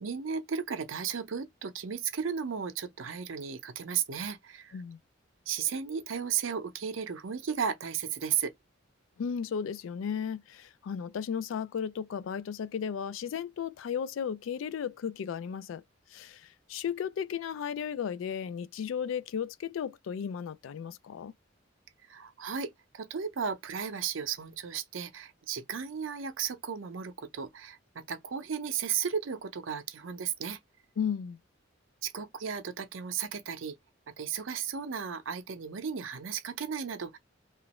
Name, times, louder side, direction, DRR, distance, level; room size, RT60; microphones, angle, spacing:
voice 1, 0.0-4.8 5.5-8.5 22.1-30.6 32.0-33.8 34.1-37.2, right 7 dB, 85° right, 0.6 m, -34 dB
voice 2, 9.2-15.8 16.1-21.3 31.0-31.4, left 7 dB, 85° left, 0.3 m, -35 dB
3.0 x 2.4 x 2.9 m
head